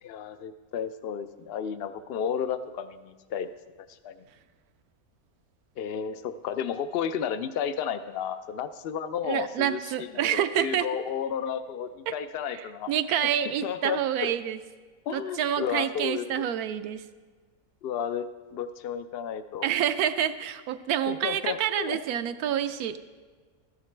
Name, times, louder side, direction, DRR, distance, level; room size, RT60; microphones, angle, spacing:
voice 1, 0.0-3.5 3.8-4.2 5.8-12.9 13.6-14.3 15.1-16.5 17.8-19.7 21.1-22.0, left 8 dB, 75° left, 11 dB, 0.5 m, -32 dB
voice 2, 9.3-10.9 12.1-12.2 12.5-14.6 15.1-17.0 19.6-23.0, right 10 dB, 85° right, 10 dB, 1.1 m, -28 dB
13.5 x 9.7 x 3.2 m, 1.4 s
omnidirectional pair, 1.6 m